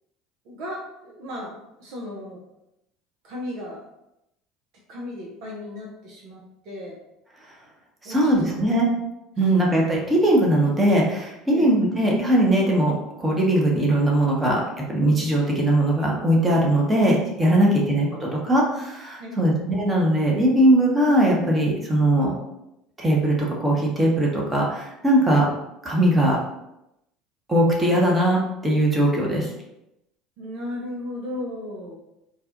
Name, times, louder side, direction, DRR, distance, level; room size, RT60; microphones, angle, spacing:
voice 1, 0.4-2.4 3.2-3.9 4.9-7.0 8.0-8.6 11.5-11.8 17.7-18.0 19.2-19.5 30.4-32.0, left 1 dB, 60° right, -2 dB, 0.7 m, -36 dB
voice 2, 8.0-8.9 9.4-14.6 14.9-22.3 23.0-25.5 25.8-26.4 27.5-29.5, right 1 dB, 20° right, -2 dB, 1.1 m, -20 dB
4.1 x 2.4 x 2.6 m, 0.86 s
hypercardioid pair, 70°, 0 cm